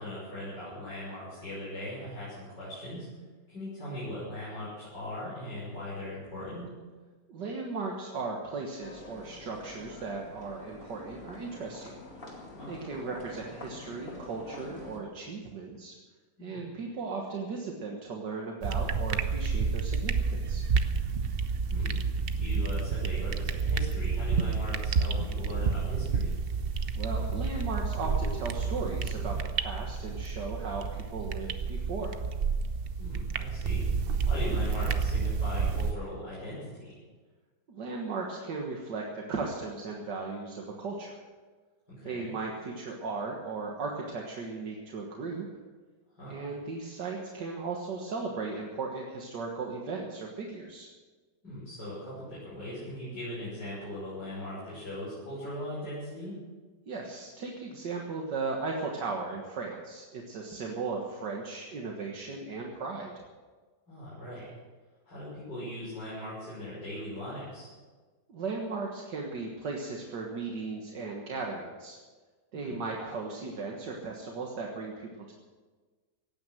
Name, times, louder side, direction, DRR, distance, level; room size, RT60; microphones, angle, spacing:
voice 1, 0.0-3.1 3.5-6.6 12.6-12.7 16.4-16.6 21.7-22.0 22.4-26.3 33.0-33.8 34.3-37.0 42.0-42.3 46.2-46.4 51.4-56.3 63.9-64.5 65.0-67.7 72.5-72.8, left 1 dB, 80° left, -9 dB, 6.7 m, -39 dB
voice 2, 7.3-12.0 12.7-16.0 16.4-20.6 27.0-32.2 37.7-41.2 42.0-45.5 46.3-50.9 56.9-63.1 68.3-72.0 72.5-75.3, right 4 dB, 80° right, 0 dB, 2.1 m, -37 dB
sound 1, 8.8-15.0, left 2 dB, 50° left, 2.7 m, -46 dB
sound 2, 18.6-35.9, right 5 dB, 50° right, 0.7 m, -30 dB
17.0 x 9.3 x 7.7 m, 1.4 s
omnidirectional pair, 1.9 m